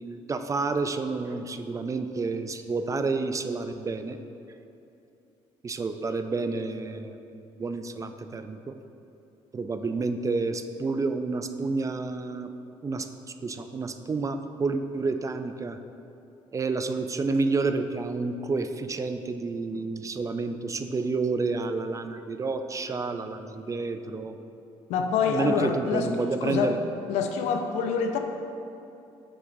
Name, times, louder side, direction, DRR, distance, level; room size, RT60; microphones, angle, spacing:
voice 1, 0.0-4.2 5.6-8.8 9.5-12.5 12.8-13.1 13.4-15.8 16.5-24.4 25.3-26.8, right 3 dB, 30° right, 8 dB, 0.4 m, -29 dB
voice 2, 24.9-26.1 26.4-26.8 27.1-28.2, left 6 dB, 85° left, 5 dB, 0.5 m, -26 dB
7.7 x 6.1 x 2.6 m, 2.7 s
supercardioid pair, 80°, 12 cm